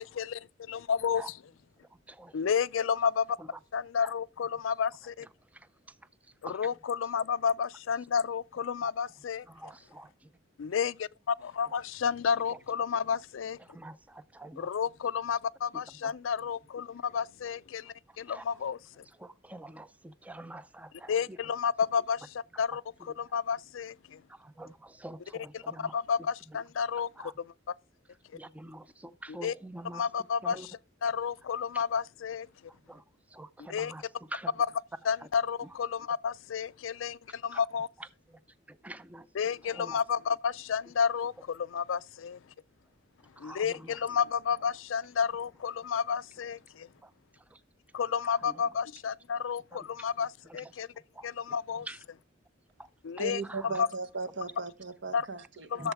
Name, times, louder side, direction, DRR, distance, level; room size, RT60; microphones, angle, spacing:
voice 1, 0.0-1.2 2.3-3.4 3.7-5.3 6.6-9.5 10.6-13.6 14.6-19.0 21.1-22.2 22.6-22.8 23.2-24.2 25.9-27.1 29.4-29.5 29.9-30.6 31.0-32.5 33.7-33.9 35.1-37.9 39.4-42.4 43.4-46.9 47.9-50.9 51.2-51.9 53.0-53.4 53.8-53.9 55.1-55.3 55.7-55.9, left 6 dB, 80° left, 0.4 m, -31 dB
voice 2, 1.9-2.5 3.4-3.6 4.0-4.1 5.0-6.7 8.8-8.9 9.4-10.3 11.7-11.8 12.5-12.6 13.6-14.7 15.9-16.2 17.8-18.7 19.0-21.5 21.8-21.9 22.7-23.4 24.3-25.9 26.2-26.6 26.9-27.3 28.3-30.1 30.4-30.7 31.0-31.1 31.7-31.8 32.7-34.5 35.2-35.3 35.6-35.8 37.3-37.7 38.0-39.3 39.6-40.0 43.2-44.0 47.0-47.6 48.2-48.7 49.5-50.1 50.4-52.1 52.8-52.9 53.2-53.8 55.8-55.9, right 1 dB, 5° right, 0.4 m, -48 dB
voice 3, 53.2-55.9, right 4 dB, 60° right, 1.0 m, -37 dB
11.5 x 7.1 x 4.6 m
head